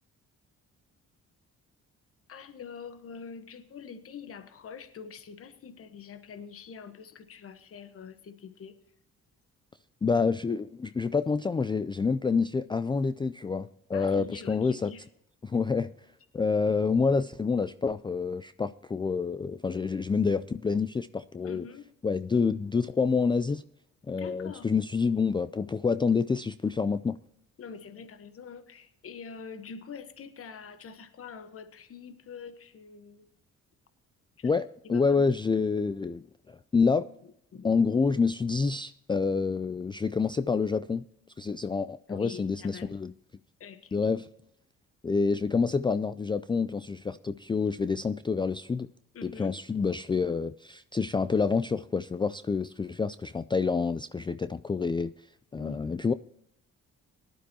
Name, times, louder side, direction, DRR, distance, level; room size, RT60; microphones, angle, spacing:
voice 1, 2.3-8.8 13.9-15.1 21.4-21.8 24.2-24.7 27.6-33.3 34.4-34.5 34.8-35.7 37.5-37.7 42.1-43.0 43.6-44.0 49.1-49.6 55.5-56.0, left 6 dB, 50° left, 11 dB, 1.2 m, -45 dB
voice 2, 10.0-14.9 15.4-15.9 16.3-21.6 22.0-23.6 24.1-27.2 34.4-37.1 37.6-41.0 41.4-43.1 43.9-44.3 45.0-48.9 49.2-55.1 55.5-56.1, left 5 dB, 15° left, 13 dB, 0.3 m, -28 dB
18.0 x 12.0 x 2.9 m, 0.73 s
cardioid pair, 90°, 30 cm